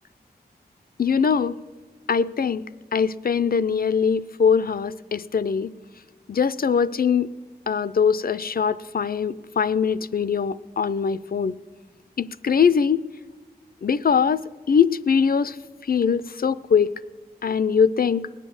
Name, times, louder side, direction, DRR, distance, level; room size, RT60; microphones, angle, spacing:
voice 1, 1.0-1.5 2.1-2.6 2.9-5.7 6.3-7.3 7.7-11.5 12.2-13.0 13.8-14.4 14.7-15.6 15.9-16.9 17.4-18.3, left 6 dB, 65° left, 16 dB, 0.4 m, -22 dB
19.5 x 8.3 x 7.1 m, 1.4 s
wide cardioid pair, 80°, 17 cm